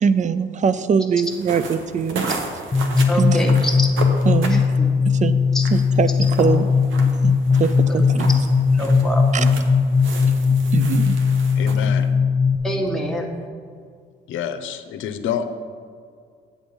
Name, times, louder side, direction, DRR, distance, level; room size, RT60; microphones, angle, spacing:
voice 1, 0.0-2.3 3.2-3.4 4.2-4.6 5.0-5.4 5.7-6.7 7.2-8.3 9.3-9.4 10.7-11.2, right 6 dB, 40° right, 14 dB, 0.4 m, -22 dB
sound 1, 1.3-12.1, right 3 dB, 80° right, 1.1 m, -34 dB
sound 2, 2.7-12.6, left 5 dB, 25° left, 0.7 m, -18 dB
voice 2, 3.1-3.9 4.5-4.9 5.5-5.6 7.9-8.2 8.7-9.5 12.6-13.3, left 1 dB, ahead, -1 dB, 1.4 m, -26 dB
voice 3, 11.6-12.1 14.3-15.4, left 8 dB, 80° left, 10 dB, 0.7 m, -27 dB
8.5 x 7.0 x 5.2 m, 2.1 s
cardioid pair, 90°, 20 cm